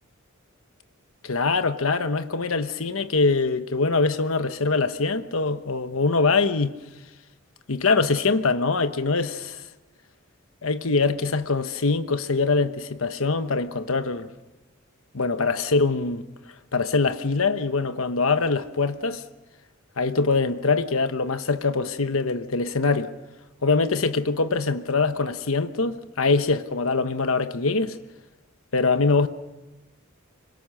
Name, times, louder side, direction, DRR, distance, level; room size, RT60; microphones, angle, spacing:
voice 1, 1.2-6.7 7.7-9.6 10.6-14.3 15.1-16.2 16.7-19.2 20.0-23.1 23.6-28.0 28.7-29.3, left 4 dB, 80° left, 1.1 m, -23 dB
26.0 x 23.0 x 6.5 m
head